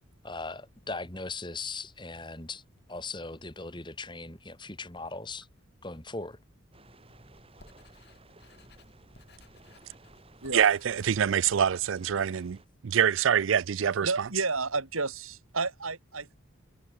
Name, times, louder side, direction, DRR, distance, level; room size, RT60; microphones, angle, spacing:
voice 1, 0.2-2.6 2.9-5.5 5.8-6.4, left 3 dB, 20° left, 2.3 m, -39 dB
sound 1, 6.7-12.7, right 2 dB, 25° right, 3.8 m, -56 dB
Writing, 7.1-12.7, left 2 dB, 50° left, 6.7 m, -59 dB
voice 2, 10.5-14.1, right 8 dB, 70° right, 0.4 m, -25 dB
voice 3, 14.0-16.4, right 3 dB, 90° right, 4.1 m, -31 dB
head